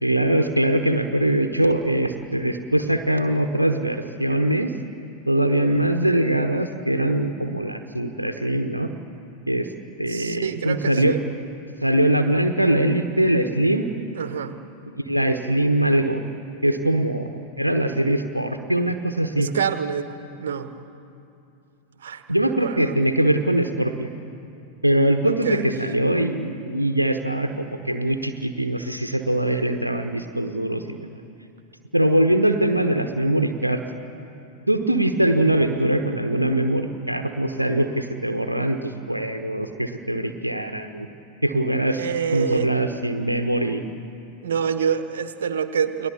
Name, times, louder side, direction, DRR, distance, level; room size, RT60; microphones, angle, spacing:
voice 1, 0.0-4.7 5.3-8.9 9.5-9.7 10.0-11.2 11.8-13.9 14.9-16.2 16.6-19.5 22.3-24.1 24.8-31.1 31.9-33.8 34.7-41.1 41.4-42.1 42.3-43.8, right 1 dB, 85° right, 6 dB, 1.0 m, -22 dB
voice 2, 10.1-11.2 14.1-14.5 19.4-20.1 20.4-20.7 22.0-22.2 22.6-22.9 25.2-25.6 41.9-42.7 44.4-46.1, right 7 dB, 60° right, 10 dB, 1.3 m, -26 dB
30.0 x 20.0 x 7.1 m, 2.7 s
figure-of-eight pair, 90°, 0 cm